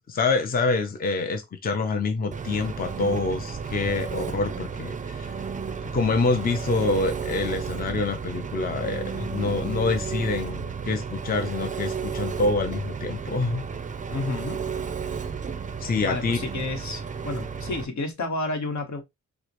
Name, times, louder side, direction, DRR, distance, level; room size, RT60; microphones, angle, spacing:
voice 1, 0.0-5.3 5.9-13.6 15.8-16.4, left 3 dB, 30° left, 0.5 m, -26 dB
Engine, 2.3-17.8, right 6 dB, 25° right, 0.4 m, -33 dB
voice 2, 14.1-14.6 16.0-19.0, left 2 dB, 70° left, 1.1 m, -30 dB
4.7 x 2.0 x 2.9 m
wide cardioid pair, 100°, 30 cm